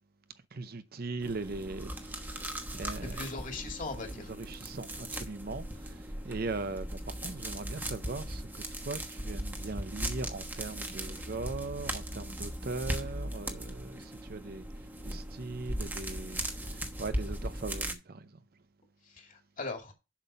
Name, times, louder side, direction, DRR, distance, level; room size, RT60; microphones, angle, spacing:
voice 1, 0.5-3.3 4.4-8.5 8.8-18.4, right 3 dB, 50° right, 0.7 m, -40 dB
sound 1, 1.2-17.9, right 1 dB, 10° right, 1.1 m, -38 dB
voice 2, 2.6-4.3 19.0-19.9, left 3 dB, 40° left, 2.3 m, -40 dB
7.4 x 6.0 x 5.4 m
head